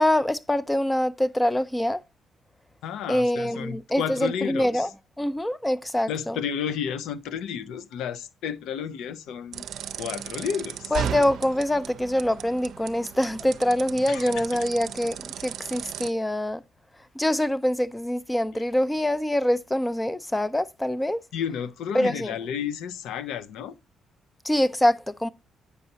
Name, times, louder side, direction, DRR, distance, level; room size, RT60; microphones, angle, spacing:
voice 1, 0.0-2.0 3.1-4.9 5.2-6.4 10.9-16.6 17.2-21.2 21.9-22.3 24.4-25.3, left 1 dB, 10° left, 0.5 m, -24 dB
voice 2, 2.8-4.9 6.1-9.7 10.0-11.0 14.1-14.7 18.5-18.6 21.3-23.8, left 8 dB, 85° left, 0.6 m, -32 dB
sound 1, 9.5-16.1, right 9 dB, 75° right, 0.5 m, -36 dB
8.2 x 5.3 x 2.8 m
cardioid pair, 90°, 0 cm